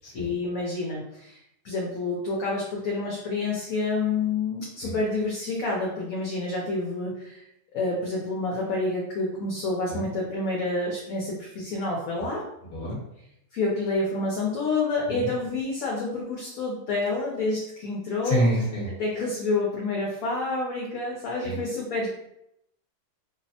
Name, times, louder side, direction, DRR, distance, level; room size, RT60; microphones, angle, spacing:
voice 1, 0.1-1.4 1.6-7.4 7.7-12.5 13.5-18.4 19.0-22.1, left 3 dB, 70° left, -3 dB, 1.0 m, -28 dB
voice 2, 12.7-13.0 15.1-15.3 18.2-18.9 21.4-21.6, equal, 45° left, -4 dB, 1.2 m, -27 dB
3.2 x 2.0 x 2.7 m, 0.78 s
omnidirectional pair, 1.7 m